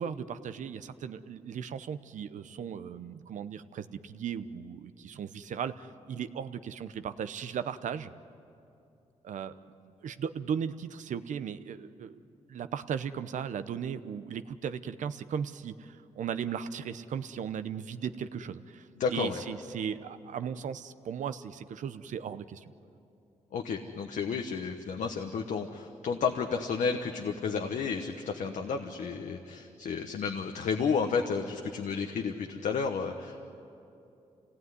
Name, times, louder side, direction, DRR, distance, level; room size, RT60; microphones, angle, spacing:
voice 1, 0.0-8.1 9.2-9.6 9.9-12.2 12.5-22.7, right 7 dB, 80° right, 12 dB, 0.8 m, -37 dB
voice 2, 19.0-19.4 23.5-33.4, left 5 dB, 80° left, 4 dB, 1.2 m, -32 dB
26.5 x 18.0 x 9.5 m, 2.7 s
cardioid pair, 80°, 13 cm